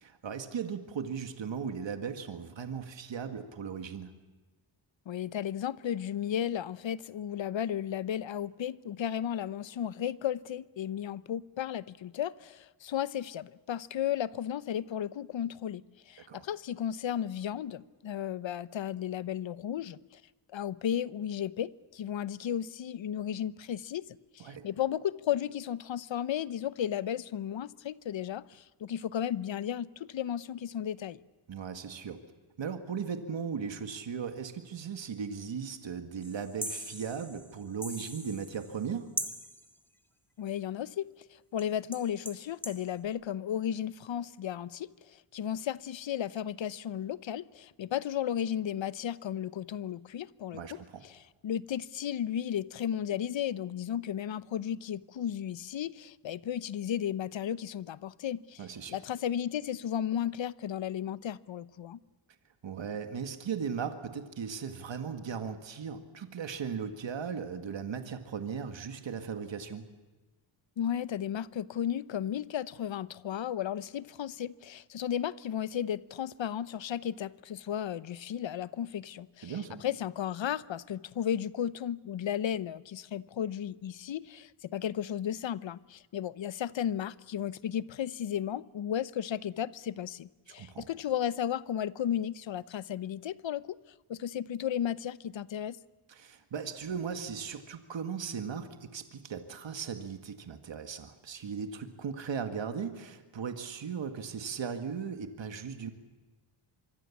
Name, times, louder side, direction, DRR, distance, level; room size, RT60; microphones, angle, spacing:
voice 1, 0.0-4.1 16.3-16.4 24.4-24.7 31.5-32.2 32.6-39.1 50.5-51.0 58.6-59.0 62.6-69.9 79.4-79.8 90.6-90.9 96.1-105.9, right 6 dB, 65° right, 2.0 m, -37 dB
voice 2, 5.1-20.2 20.5-31.2 40.4-50.8 51.0-62.0 70.8-79.5 79.8-93.7 94.1-95.8, left 10 dB, 65° left, 0.8 m, -34 dB
sound 1, 36.2-38.9 39.2-39.7 41.6-41.7 41.9-42.8, equal, 5° left, 1.8 m, -40 dB
25.0 x 24.0 x 7.3 m
wide cardioid pair, 100°, 49 cm